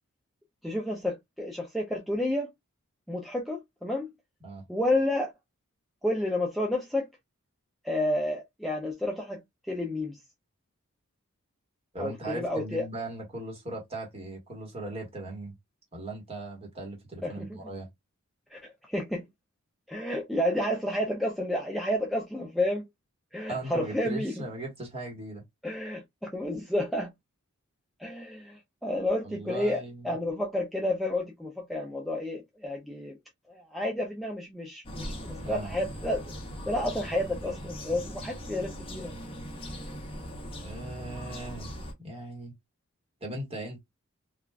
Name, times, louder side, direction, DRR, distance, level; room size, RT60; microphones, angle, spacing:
voice 1, 0.6-2.5 3.1-4.1 4.7-5.3 6.0-7.1 7.8-9.4 9.7-10.2 12.0-12.8 17.2-17.6 18.5-19.3 19.9-22.9 23.3-24.3 25.6-27.1 28.0-33.2 33.5-36.2 36.7-39.1, left 1 dB, ahead, 0.4 m, -30 dB
voice 2, 11.9-15.5 15.9-17.9 23.5-25.4 29.2-30.2 35.4-35.9 40.6-41.7 42.0-42.5 43.2-43.8, right 2 dB, 25° right, 1.2 m, -38 dB
sound 1, 34.8-41.9, equal, 25° left, 0.8 m, -40 dB
3.3 x 2.4 x 2.2 m
head